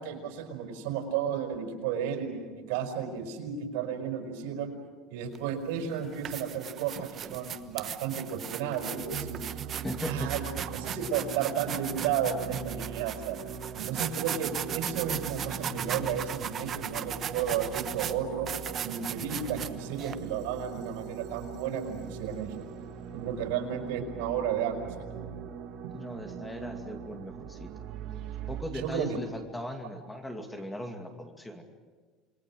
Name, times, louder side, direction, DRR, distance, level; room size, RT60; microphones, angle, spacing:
voice 1, 0.0-4.7 5.1-9.4 10.1-10.4 10.7-13.4 13.8-18.5 18.8-22.6 23.1-25.3 28.7-29.2, right 8 dB, 90° right, 5 dB, 5.6 m, -33 dB
sound 1, 5.3-5.5 6.0-20.1, right 9 dB, 35° right, 1.1 m, -37 dB
sound 2, 9.1-28.6, right 6 dB, 55° right, 2.7 m, -41 dB
voice 2, 9.8-10.3 25.9-27.7 28.5-31.6, left 1 dB, 5° left, 6 dB, 2.4 m, -38 dB
28.0 x 21.5 x 7.8 m, 1.5 s
cardioid pair, 160°, 0 cm